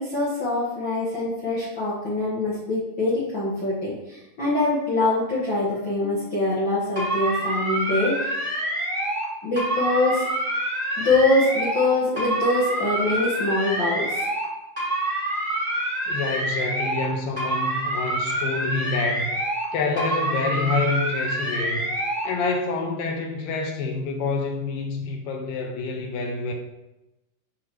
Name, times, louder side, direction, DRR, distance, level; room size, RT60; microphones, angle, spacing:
voice 1, 0.0-8.4 9.4-10.2 11.0-14.2, left 2 dB, 50° left, -7 dB, 1.5 m, -24 dB
sound 1, 7.0-9.3 9.6-11.9 12.2-14.5 14.8-17.1 17.4-19.7 20.0-22.3, right 1 dB, 15° right, 1.9 m, -27 dB
voice 2, 16.1-19.3 19.7-21.9 22.2-26.5, left 3 dB, 90° left, 2 dB, 2.7 m, -27 dB
7.3 x 6.5 x 2.9 m, 0.96 s
omnidirectional pair, 3.9 m